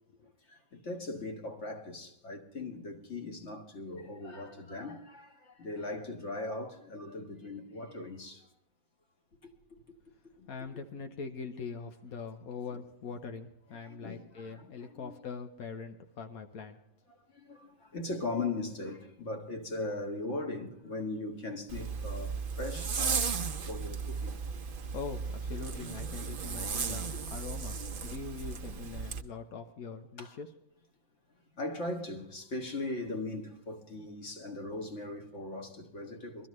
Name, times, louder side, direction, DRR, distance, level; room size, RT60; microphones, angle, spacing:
voice 1, 0.5-8.5 9.7-9.8 10.4-10.5 13.8-15.2 17.3-24.3 30.2-30.3 31.6-36.5, left 2 dB, 55° left, 1.9 m, -39 dB
voice 2, 10.5-16.8 24.9-30.5, left 5 dB, 90° left, 1.4 m, -42 dB
Zipper (clothing), 21.7-29.2, right 5 dB, 45° right, 0.8 m, -35 dB
22.5 x 13.5 x 3.2 m
omnidirectional pair, 1.5 m